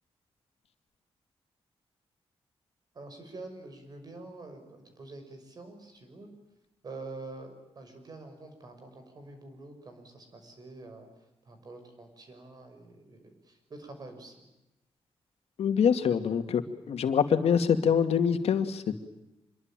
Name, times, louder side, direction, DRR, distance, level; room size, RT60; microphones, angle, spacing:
voice 1, 2.9-6.3 6.8-11.1 11.5-14.5, right 2 dB, 40° right, 6 dB, 6.1 m, -46 dB
voice 2, 15.6-16.6 16.9-19.0, left 7 dB, 85° left, 7 dB, 2.3 m, -25 dB
26.0 x 23.0 x 9.1 m, 0.96 s
wide cardioid pair, 170°, 10 cm